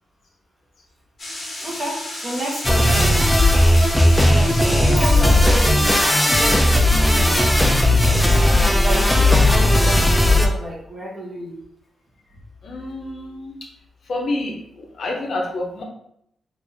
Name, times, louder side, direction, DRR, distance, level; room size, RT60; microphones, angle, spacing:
sound 1, 1.2-6.4, left 1 dB, 35° left, 1.0 m, -33 dB
voice 1, 1.6-3.2 4.7-7.5 8.2-11.6, right 1 dB, 25° right, -2 dB, 0.8 m, -29 dB
sound 2, 2.6-10.5, left 1 dB, 5° left, 0.3 m, -16 dB
voice 2, 12.6-13.7 14.0-15.8, left 2 dB, 55° left, 0 dB, 0.6 m, -28 dB
3.4 x 2.4 x 3.1 m, 0.72 s
wide cardioid pair, 155°, 0 cm